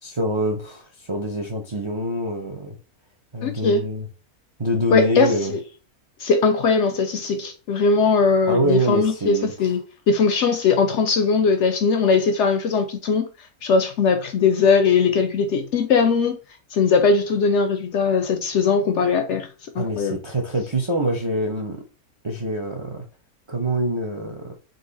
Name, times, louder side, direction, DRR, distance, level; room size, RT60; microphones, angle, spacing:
voice 1, 0.0-2.8 3.3-4.1 4.6-5.5 8.5-9.7 19.8-21.8 22.2-23.0 23.5-24.6, right 1 dB, 45° right, 0.3 m, -25 dB
voice 2, 3.4-3.8 4.9-5.6 6.2-13.3 13.6-16.4 16.7-19.5 19.8-20.2, left 5 dB, 65° left, 0.7 m, -20 dB
4.0 x 2.6 x 3.9 m
omnidirectional pair, 1.6 m